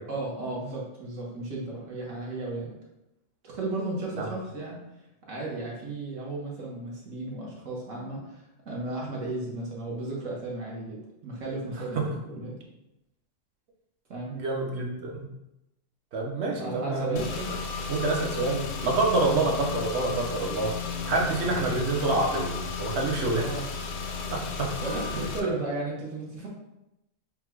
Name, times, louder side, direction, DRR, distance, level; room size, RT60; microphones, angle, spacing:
voice 1, 0.1-2.7 3.4-4.8 5.3-12.5 14.1-14.4 16.6-17.3 19.3-19.5 21.6-21.8 23.4-23.6 24.8-26.5, right 2 dB, 75° right, -4 dB, 1.3 m, -34 dB
voice 2, 14.3-15.3 16.1-17.2 17.9-20.7 21.1-23.5 24.6-24.7 25.4-25.5, right 2 dB, 60° right, 0 dB, 1.0 m, -27 dB
Car / Engine, 17.2-25.4, left 5 dB, 65° left, 0.8 m, -34 dB
3.9 x 2.2 x 4.5 m, 0.89 s
omnidirectional pair, 1.3 m